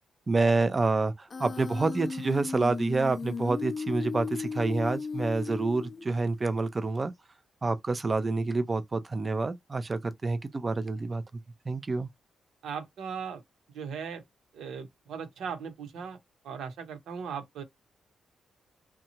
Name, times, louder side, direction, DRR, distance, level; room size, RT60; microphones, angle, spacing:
voice 1, 0.3-7.1 7.6-11.2 11.7-12.1, right 3 dB, 30° right, 0.5 m, -28 dB
Human voice, 1.3-6.3, left 4 dB, 35° left, 0.4 m, -36 dB
voice 2, 12.6-13.4 13.7-14.2 14.5-16.2 16.4-17.6, right 6 dB, 85° right, 0.9 m, -38 dB
2.8 x 2.3 x 2.8 m
cardioid pair, 105°, 0 cm